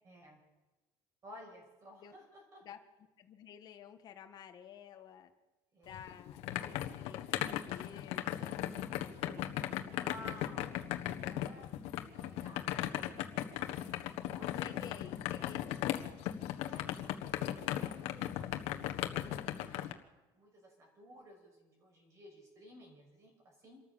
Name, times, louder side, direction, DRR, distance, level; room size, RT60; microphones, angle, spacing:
voice 1, 0.0-0.4 1.2-2.6 5.7-6.0 9.2-15.1 16.6-23.8, equal, 30° right, 0 dB, 6.5 m, -56 dB
voice 2, 3.2-5.3 5.8-8.6 14.3-15.9, left 9 dB, 40° left, 6 dB, 1.7 m, -52 dB
sound 1, 5.9-19.9, left 13 dB, 75° left, 1.5 m, -37 dB
26.0 x 14.0 x 7.2 m, 1.1 s
cardioid pair, 170°, 11 cm